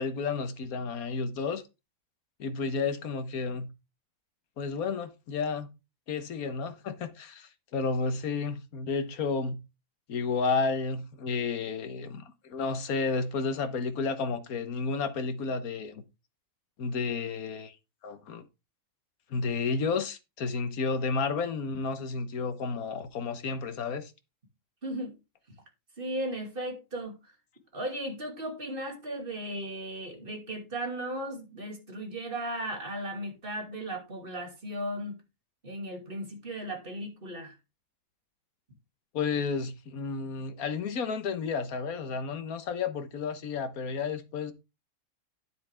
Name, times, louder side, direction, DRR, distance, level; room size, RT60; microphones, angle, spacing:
voice 1, 0.0-1.6 2.4-3.7 4.6-5.7 6.1-9.6 10.1-16.0 16.8-17.7 18.0-18.4 19.3-24.1 39.1-44.5, left 4 dB, 90° left, 1.6 m, -31 dB
voice 2, 24.8-25.1 26.0-27.3 27.7-35.2 35.6-37.5, right 1 dB, 40° right, 2.6 m, -36 dB
9.9 x 7.6 x 3.4 m
omnidirectional pair, 1.5 m